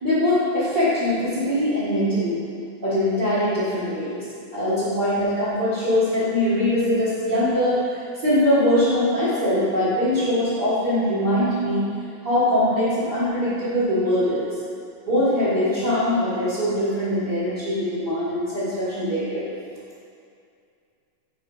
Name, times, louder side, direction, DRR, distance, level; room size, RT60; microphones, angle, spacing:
voice 1, 0.0-2.4 2.8-4.2 4.5-11.9 12.2-14.5 15.0-19.4, left 1 dB, 65° right, -13 dB, 1.0 m, -22 dB
5.5 x 4.8 x 5.3 m, 2.4 s
omnidirectional pair, 4.7 m